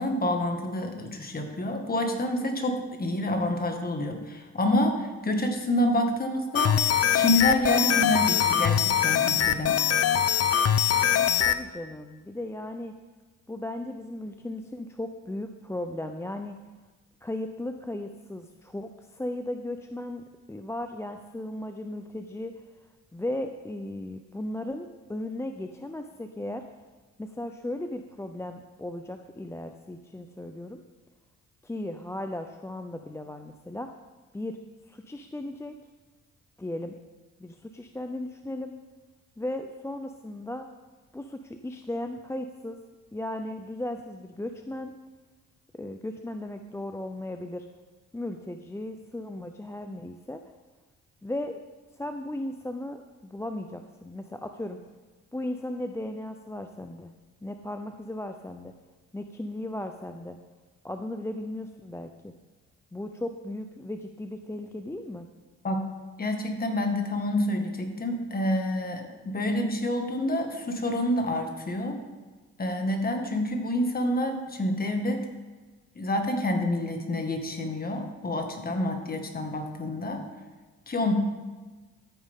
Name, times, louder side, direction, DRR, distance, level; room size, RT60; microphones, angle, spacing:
voice 1, 0.0-9.8 65.6-65.9 66.2-72.0 72.6-75.3 76.0-80.2 80.9-81.1, left 1 dB, 30° left, 4 dB, 1.9 m, -28 dB
sound 1, 6.5-11.6, left 9 dB, 55° left, 0.6 m, -23 dB
voice 2, 11.4-12.9 13.5-16.6 17.2-22.5 23.1-26.6 27.2-30.8 31.6-33.9 34.3-34.6 34.9-35.8 36.6-36.9 37.4-38.7 39.4-40.7 41.1-42.8 43.1-44.9 45.7-47.7 48.1-50.4 51.2-51.6 52.0-54.8 55.3-57.1 57.4-58.7 59.1-60.4 60.8-62.3 62.9-65.3, left 1 dB, 10° left, 6 dB, 0.6 m, -36 dB
13.5 x 9.0 x 3.7 m, 1.3 s
cardioid pair, 90°, 30 cm